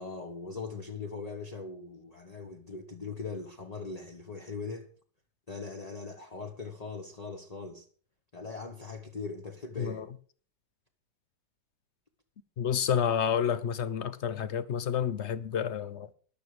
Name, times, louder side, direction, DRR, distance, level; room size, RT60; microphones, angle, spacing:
voice 1, 0.0-4.9 5.5-7.9 8.3-10.1, left 4 dB, 25° left, 1.1 m, -40 dB
voice 2, 12.6-16.1, left 8 dB, 50° left, 0.9 m, -29 dB
13.5 x 11.0 x 4.9 m
omnidirectional pair, 1.9 m